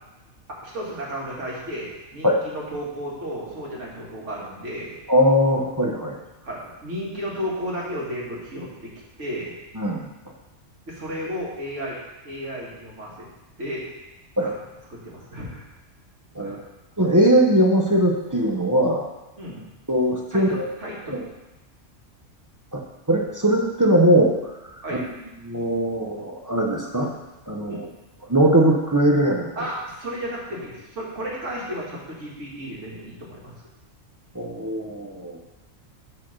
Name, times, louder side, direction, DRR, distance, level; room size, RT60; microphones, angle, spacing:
voice 1, 0.5-5.0 6.4-8.9 9.2-9.5 10.9-12.0 12.2-13.3 13.6-13.8 14.4-14.5 14.9-15.7 16.4-16.6 19.4-19.7 20.3-21.3 24.8-25.1 27.7-27.8 29.6-33.5, equal, 65° right, -5 dB, 2.1 m, -33 dB
voice 2, 5.1-6.2 9.7-10.1 14.4-14.5 16.3-16.6 17.0-19.1 19.9-20.7 21.1-21.2 22.7-22.8 23.1-24.3 25.4-27.1 27.5-27.9 28.3-29.5 34.3-35.4, right 1 dB, 20° right, 0 dB, 0.6 m, -20 dB
6.3 x 4.1 x 6.3 m, 1.0 s
omnidirectional pair, 1.4 m